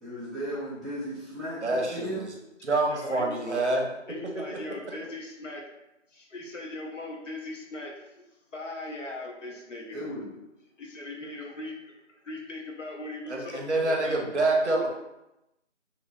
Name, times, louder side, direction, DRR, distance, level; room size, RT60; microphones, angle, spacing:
voice 1, 0.0-2.2 9.9-10.3, equal, ahead, -12 dB, 0.5 m, -35 dB
voice 2, 1.6-2.3 2.6-3.8 13.3-14.9, right 2 dB, 65° right, 0 dB, 0.6 m, -26 dB
voice 3, 2.9-3.7 4.1-5.6 6.1-8.0 8.5-10.0 10.8-14.2, left 2 dB, 75° left, 0 dB, 0.7 m, -39 dB
2.8 x 2.0 x 2.6 m, 0.91 s
figure-of-eight pair, 175°, 37 cm